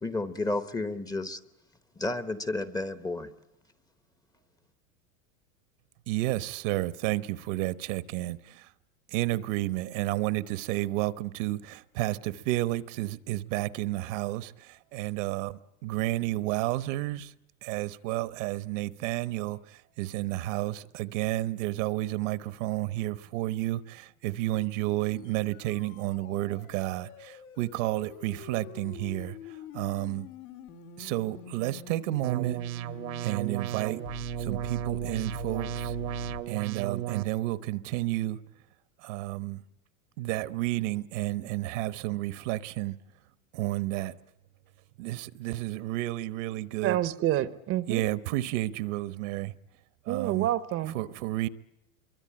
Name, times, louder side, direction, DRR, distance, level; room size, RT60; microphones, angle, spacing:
voice 1, 0.0-1.4 2.0-3.3, left 2 dB, 10° left, 0.9 m, -31 dB
voice 2, 6.1-8.7 9.1-17.3 17.6-30.3 31.0-32.6 33.2-34.0 34.4-36.0 36.5-38.4 39.0-39.6 40.2-43.0 43.5-44.1 45.0-47.0 47.9-49.5 50.0-50.5 50.9-51.5, right 17 dB, 60° right, 1.1 m, -31 dB
flower stereoscope, 25.3-36.4, left 9 dB, 80° left, 3.2 m, -45 dB
sound 1, 32.2-37.2, right 13 dB, 80° right, 1.5 m, -35 dB
voice 3, 46.8-48.0 50.1-50.9, right 13 dB, 30° right, 0.9 m, -28 dB
26.0 x 23.5 x 8.7 m
supercardioid pair, 140°, 43 cm